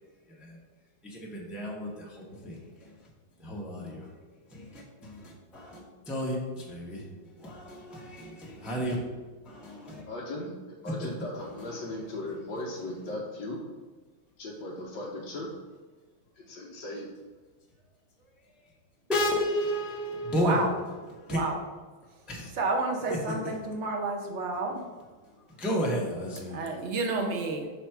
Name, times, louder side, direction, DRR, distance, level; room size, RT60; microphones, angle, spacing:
voice 1, 1.0-2.9 3.4-4.1 4.5-5.8 6.1-7.0 7.4-8.9 9.4-10.0 19.1-21.4 22.3-22.5 23.1-23.2 25.6-26.7, equal, ahead, -3 dB, 0.5 m, -32 dB
voice 2, 9.9-13.6 14.4-15.5 16.3-17.1, left 1 dB, 65° left, -4 dB, 1.4 m, -37 dB
voice 3, 20.3-20.7 21.3-21.6 22.6-24.8 26.3-27.7, right 3 dB, 75° right, 2 dB, 0.6 m, -30 dB
5.8 x 4.1 x 4.5 m, 1.3 s
omnidirectional pair, 2.3 m